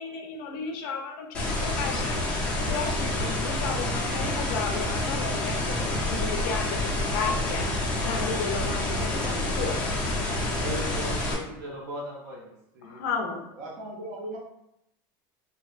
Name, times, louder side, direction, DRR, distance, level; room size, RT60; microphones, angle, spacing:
voice 1, 0.0-9.8 12.8-13.4, left 5 dB, 70° left, 3 dB, 0.4 m, -34 dB
sound 1, 1.3-11.3, left 1 dB, 10° left, 0.5 m, -28 dB
voice 2, 10.6-13.0, equal, 85° right, -4 dB, 0.7 m, -37 dB
voice 3, 13.5-14.4, right 1 dB, 40° right, -3 dB, 0.5 m, -37 dB
2.6 x 2.1 x 2.3 m, 0.81 s
cardioid pair, 170°, 11 cm